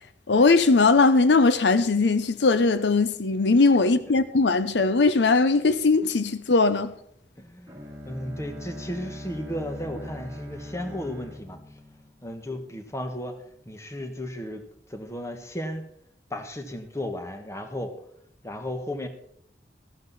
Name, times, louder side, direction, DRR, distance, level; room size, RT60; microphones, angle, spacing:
voice 1, 0.3-6.9, left 3 dB, 80° left, 0.7 m, -20 dB
voice 2, 7.4-7.8 8.0-11.6 12.2-13.4 13.6-14.6 14.9-15.8 16.3-17.9 18.4-19.1, left 1 dB, 15° left, 1.3 m, -34 dB
Bowed string instrument, 7.7-12.6, left 1 dB, 15° right, 1.8 m, -40 dB
14.0 x 12.0 x 4.1 m
head